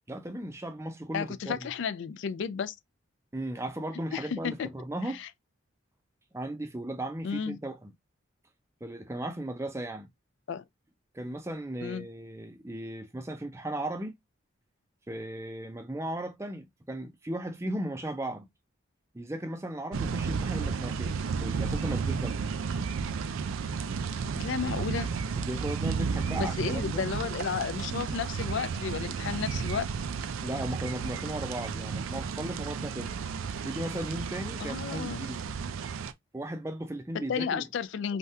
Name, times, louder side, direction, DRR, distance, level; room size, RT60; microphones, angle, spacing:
voice 1, 0.1-1.7 3.3-5.2 6.3-7.9 8.8-10.1 11.1-14.1 15.1-18.5 19.1-22.4 25.4-27.0 30.4-33.1 33.6-35.5 36.3-37.7, right 1 dB, 15° right, 0.4 m, -36 dB
voice 2, 1.1-2.8 4.1-4.7 5.2-5.3 7.2-7.6 10.5-10.6 11.8-12.0 24.4-25.1 26.3-29.9 34.6-35.3 37.3-38.2, left 6 dB, 60° left, 0.3 m, -33 dB
sound 1, 19.9-36.1, right 5 dB, 75° right, 0.4 m, -33 dB
3.4 x 2.3 x 2.6 m
head